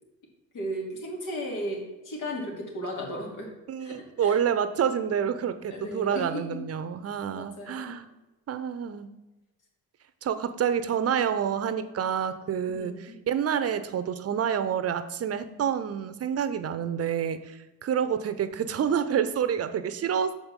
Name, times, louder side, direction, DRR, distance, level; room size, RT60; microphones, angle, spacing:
voice 1, 0.5-3.5 3.8-4.4 5.7-6.6 7.3-7.9 12.7-13.2, equal, 65° left, -1 dB, 2.9 m, -35 dB
voice 2, 3.7-8.1 8.5-9.1 10.2-20.3, right 8 dB, 45° right, 12 dB, 0.8 m, -28 dB
6.7 x 5.2 x 6.5 m, 1.1 s
supercardioid pair, 80°, 33 cm